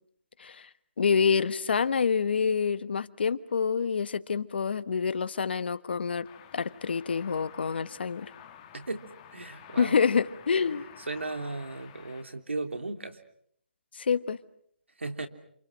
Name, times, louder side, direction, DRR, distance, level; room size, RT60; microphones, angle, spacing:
voice 1, 1.0-6.3 6.5-8.3 9.8-10.8 13.9-14.4, left 6 dB, 60° left, 14 dB, 1.3 m, -27 dB
sound 1, 6.2-12.2, left 9 dB, 25° left, 1.7 m, -51 dB
voice 2, 8.7-10.0 10.6-13.2 15.0-15.3, right 3 dB, 85° right, 7 dB, 3.2 m, -36 dB
28.5 x 28.0 x 6.3 m, 0.67 s
figure-of-eight pair, 150°, 6 cm